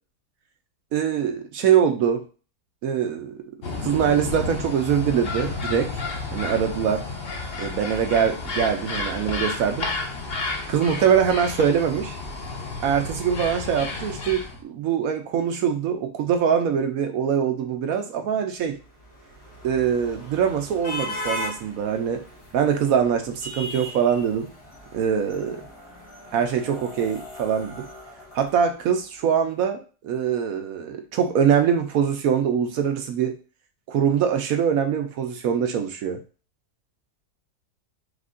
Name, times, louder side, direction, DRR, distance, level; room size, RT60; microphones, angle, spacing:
voice 1, 0.9-2.2 2.8-3.4 3.8-5.9 6.3-7.0 7.6-9.9 10.7-12.2 12.8-18.8 19.6-22.2 22.5-24.5 24.9-25.6 26.3-27.9 28.3-33.3 33.9-36.2, right 8 dB, 70° right, 6 dB, 0.9 m, -23 dB
sound 1, 3.6-14.6, left 3 dB, 45° left, 0.8 m, -31 dB
sound 2, 18.7-29.1, left 1 dB, 85° left, 2.0 m, -38 dB
5.0 x 2.4 x 3.6 m, 0.35 s
omnidirectional pair, 1.7 m